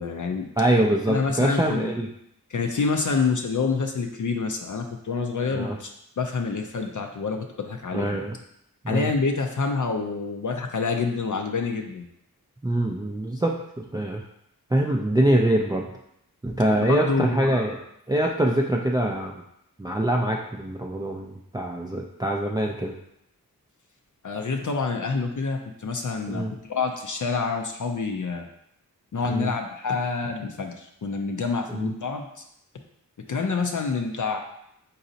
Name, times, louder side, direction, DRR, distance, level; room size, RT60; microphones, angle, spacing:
voice 1, 0.0-0.5 1.1-1.9 2.5-5.9 6.2-8.2 8.9-12.1 16.8-17.7 24.2-28.5 29.1-32.4 33.3-34.4, left 4 dB, 60° left, 3 dB, 0.5 m, -27 dB
voice 2, 0.6-2.1 5.5-5.8 7.9-8.4 8.8-9.1 12.6-14.2 14.7-15.9 16.4-17.8 18.1-19.4 19.8-23.0 26.3-26.5 29.3-29.5 31.7-31.9, right 1 dB, 10° right, -1 dB, 0.3 m, -24 dB
4.1 x 3.9 x 2.7 m, 0.76 s
wide cardioid pair, 45°, 36 cm